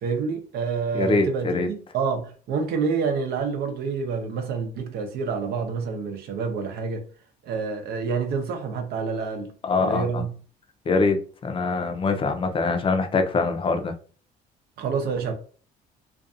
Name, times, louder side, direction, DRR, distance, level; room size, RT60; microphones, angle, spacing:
voice 1, 0.0-7.1 7.4-10.4 14.8-15.3, right 5 dB, 70° right, 0.7 m, -28 dB
voice 2, 0.9-1.7 9.6-10.3 10.9-13.9, left 4 dB, 30° left, 0.5 m, -24 dB
2.5 x 2.3 x 2.5 m
cardioid pair, 110°, 17 cm